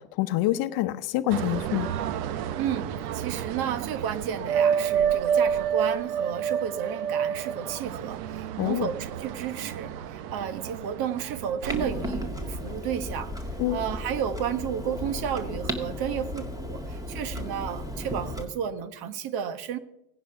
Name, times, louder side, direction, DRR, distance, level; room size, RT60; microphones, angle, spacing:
voice 1, 0.0-2.0 8.6-8.9 13.6-13.8, left 15 dB, 50° left, 12 dB, 0.9 m, -26 dB
sound 1, 1.3-13.5 13.9-14.3, right 8 dB, 70° right, 1.1 m, -30 dB
voice 2, 2.6-13.3 13.7-19.8, right 8 dB, 50° right, 12 dB, 1.4 m, -32 dB
Clock, 11.7-18.4, left 1 dB, 5° right, 2.0 m, -34 dB
17.0 x 10.0 x 5.7 m, 0.87 s
supercardioid pair, 115°, 48 cm